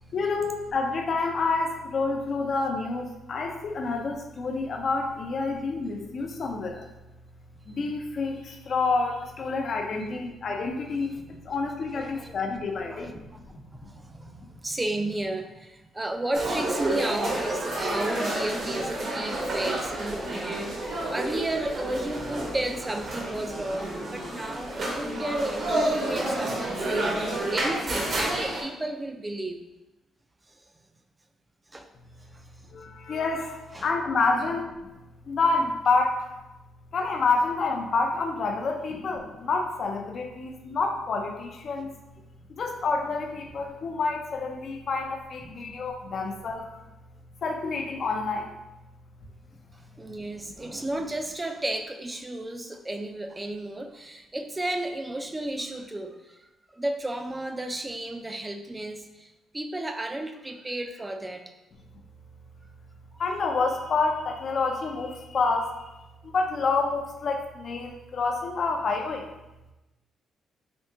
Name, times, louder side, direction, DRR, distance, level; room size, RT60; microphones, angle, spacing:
voice 1, 0.1-6.9 7.7-11.1 11.4-13.1 13.5-13.6 32.7-34.9 35.3-36.3 36.9-41.9 42.5-46.8 47.4-48.6 63.2-65.8 66.2-69.3, left 3 dB, 55° left, 3 dB, 0.4 m, -28 dB
voice 2, 11.9-12.3 12.9-13.3 13.7-29.6 30.5-30.7 31.7-31.9 32.2-32.4 33.7-33.9 34.4-34.6 38.9-39.1 45.4-45.5 49.5-61.5, right 1 dB, 15° right, 6 dB, 0.3 m, -33 dB
sound 1, 16.3-28.6, right 1 dB, 55° right, 0.9 m, -30 dB
3.5 x 2.7 x 2.6 m, 0.99 s
cardioid pair, 90°, 0 cm